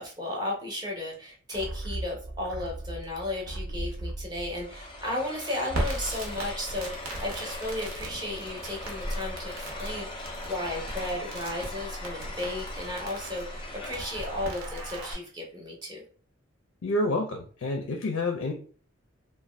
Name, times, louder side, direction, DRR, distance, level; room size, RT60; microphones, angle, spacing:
voice 1, 0.0-16.0, left 1 dB, 20° right, -2 dB, 0.6 m, -34 dB
sound 1, 1.5-6.1 6.4-6.5, right 1 dB, 65° right, 0.4 m, -38 dB
sound 2, 4.5-14.8, left 2 dB, 25° left, 0.5 m, -41 dB
Crackle, 5.7-15.1, right 1 dB, 85° right, 0.8 m, -37 dB
voice 2, 16.8-18.5, left 2 dB, 85° left, 4 dB, 0.4 m, -28 dB
2.5 x 2.1 x 3.2 m, 0.43 s
head